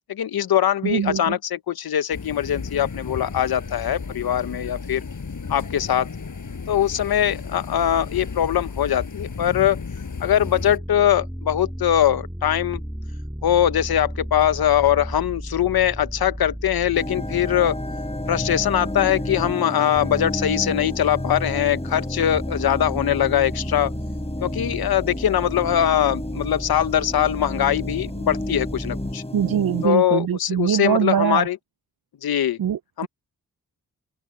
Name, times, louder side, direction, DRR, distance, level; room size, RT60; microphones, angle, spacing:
voice 1, 0.1-5.0 5.5-6.1 6.7-9.8 10.2-12.8 13.4-17.8 18.3-23.9 24.4-29.2 29.8-31.6 32.2-32.6 33.0-33.1, left 10 dB, 80° left, 0.9 m, -22 dB
voice 2, 0.8-1.4 29.3-31.5 32.6-33.1, right 9 dB, 70° right, 0.7 m, -22 dB
sound 1, 2.1-10.8, left 5 dB, 55° left, 5.6 m, -34 dB
sound 2, 10.4-19.5 19.9-29.1, equal, 5° right, 3.1 m, -34 dB
sound 3, 16.9-29.9, left 1 dB, 15° left, 4.6 m, -31 dB
cardioid pair, 45°, 36 cm